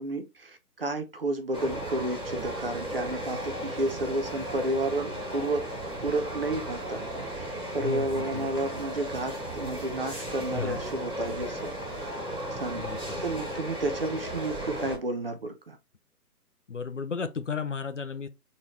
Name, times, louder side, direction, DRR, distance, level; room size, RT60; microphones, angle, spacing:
voice 1, 0.0-5.6 6.0-12.1 12.6-12.8 13.2-15.8, right 2 dB, 40° right, 0.7 m, -31 dB
sound 1, 1.5-15.0, right 1 dB, 5° left, 0.9 m, -35 dB
voice 2, 7.8-8.5 10.5-10.8 12.8-13.3 16.7-18.3, left 5 dB, 50° left, 0.6 m, -34 dB
4.0 x 3.9 x 3.1 m
figure-of-eight pair, 150°, 47 cm